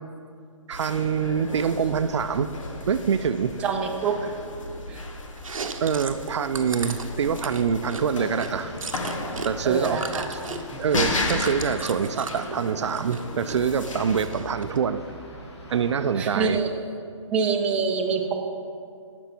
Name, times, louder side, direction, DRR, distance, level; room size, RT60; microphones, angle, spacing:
sound 1, 0.7-14.2, left 2 dB, 75° left, 1.3 m, -34 dB
voice 1, 0.7-2.5 2.9-3.6 5.8-8.7 9.4-10.0 10.3-10.4 10.8-15.0 15.7-16.6, right 7 dB, 60° right, 11 dB, 0.4 m, -25 dB
voice 2, 3.6-4.3 4.9-5.0 9.6-10.2 10.5-10.6 16.2-16.7 17.3-18.3, right 5 dB, 5° right, 0 dB, 0.5 m, -25 dB
Chewing mastication, 5.4-9.5 9.8-12.4 12.8-13.6 13.9-14.8, right 5 dB, 90° right, 0.8 m, -35 dB
sound 2, 8.1-16.6, left 1 dB, 55° left, 1.6 m, -42 dB
13.0 x 5.3 x 4.4 m, 2.3 s
hypercardioid pair, 150°, 17 cm